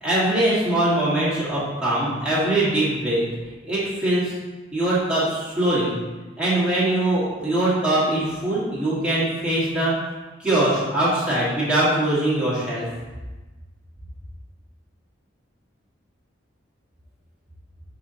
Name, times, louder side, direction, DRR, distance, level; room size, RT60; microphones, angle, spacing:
voice 1, 0.0-3.3 3.7-4.3 4.7-6.0 6.4-9.9 10.4-12.9, right 1 dB, 5° right, -10 dB, 1.9 m, -22 dB
9.0 x 4.0 x 2.9 m, 1.2 s
head